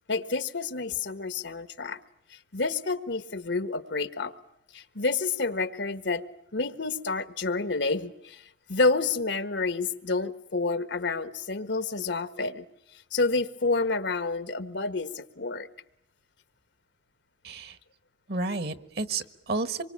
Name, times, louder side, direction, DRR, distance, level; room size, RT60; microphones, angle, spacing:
voice 1, 0.1-2.0 2.3-4.3 4.7-6.2 6.5-12.7 12.9-15.7, left 3 dB, 90° left, 1.5 m, -29 dB
voice 2, 17.4-17.8 18.3-19.8, right 3 dB, 60° right, 1.4 m, -31 dB
26.0 x 23.5 x 8.7 m
head